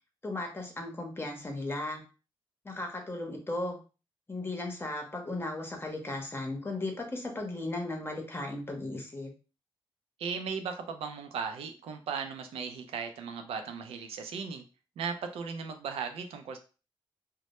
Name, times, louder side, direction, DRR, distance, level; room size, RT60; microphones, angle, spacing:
voice 1, 0.2-2.0 2.6-3.8 4.3-9.3, left 2 dB, 25° left, 2 dB, 0.8 m, -36 dB
voice 2, 10.2-14.6 15.0-16.6, right 6 dB, 80° right, 6 dB, 0.4 m, -37 dB
2.1 x 2.0 x 2.9 m, 0.34 s
cardioid pair, 65°, 10 cm